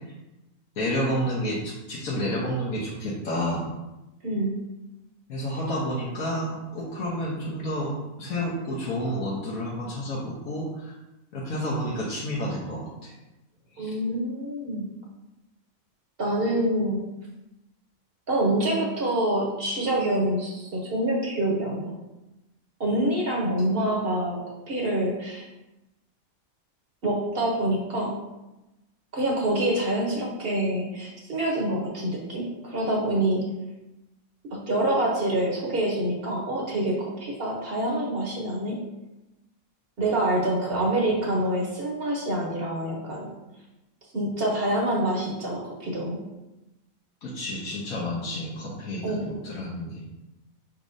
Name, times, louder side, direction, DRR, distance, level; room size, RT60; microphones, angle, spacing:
voice 1, 0.8-3.7 5.3-7.9 8.2-10.9 11.3-13.1 13.8-13.9 40.6-40.9 47.2-50.0, equal, 85° left, -6 dB, 1.4 m, -30 dB
voice 2, 4.2-4.6 13.8-14.9 16.2-17.0 18.3-21.9 22.8-24.4 24.7-25.4 27.0-28.1 29.1-33.5 34.5-38.8 40.0-43.4 44.1-46.2 49.0-49.3, right 1 dB, 50° right, -2 dB, 0.9 m, -26 dB
4.9 x 4.2 x 2.6 m, 0.99 s
omnidirectional pair, 1.4 m